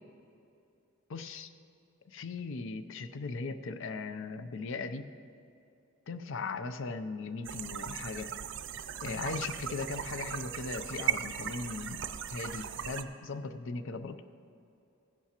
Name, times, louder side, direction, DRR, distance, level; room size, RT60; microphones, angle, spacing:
voice 1, 1.1-1.5 2.1-5.1 6.1-8.3 9.0-12.0 12.3-14.2, left 4 dB, 65° left, 11 dB, 0.5 m, -38 dB
sound 1, 7.4-13.0, right 9 dB, 60° right, 0.5 m, -37 dB
15.5 x 10.5 x 2.9 m, 2.7 s
head